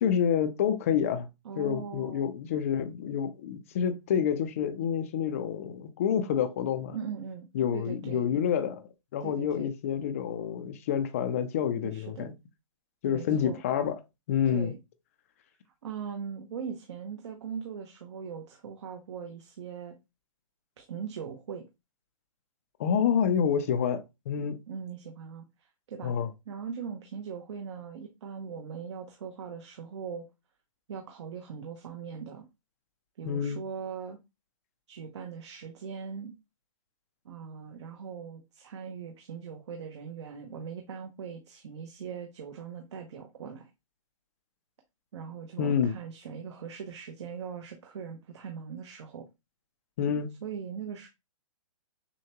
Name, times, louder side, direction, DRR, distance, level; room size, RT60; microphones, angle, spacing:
voice 1, 0.0-1.3 1.6-7.0 7.5-12.3 13.0-13.9 14.3-14.7 22.8-24.6 26.0-26.3 33.2-33.6 45.6-45.9 50.0-50.3, left 8 dB, 25° left, 0.4 m, -28 dB
voice 2, 1.4-2.3 6.9-8.2 9.2-9.7 11.8-12.3 13.1-13.6 14.5-14.8 15.8-19.9 20.8-21.6 24.7-26.1 26.5-30.3 30.9-32.4 33.2-34.2 34.9-36.4 37.2-43.7 45.1-49.2 50.4-51.1, right 7 dB, 55° right, 0.8 m, -40 dB
6.3 x 2.2 x 2.8 m
hypercardioid pair, 165°, 17 cm